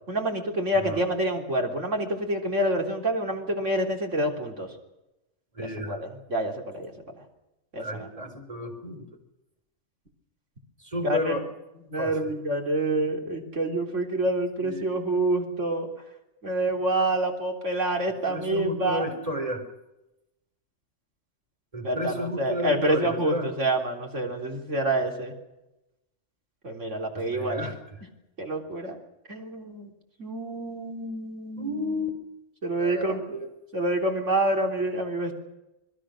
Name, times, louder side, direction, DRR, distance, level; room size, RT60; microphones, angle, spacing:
voice 1, 0.1-4.7 5.6-6.9 7.7-8.1 11.0-11.3 11.9-15.9 16.4-19.2 21.8-25.3 26.6-27.7 28.4-29.0 29.3-29.9 30.2-32.1 32.6-33.3 33.7-35.3, right 1 dB, 65° right, 2 dB, 3.9 m, -27 dB
voice 2, 5.5-6.0 7.8-9.1 10.8-11.5 12.0-12.2 14.6-15.0 18.3-19.6 21.7-23.5 27.1-27.7 31.6-32.1 32.8-33.5, equal, 25° right, 4 dB, 4.5 m, -32 dB
26.5 x 21.5 x 6.5 m, 0.95 s
omnidirectional pair, 1.4 m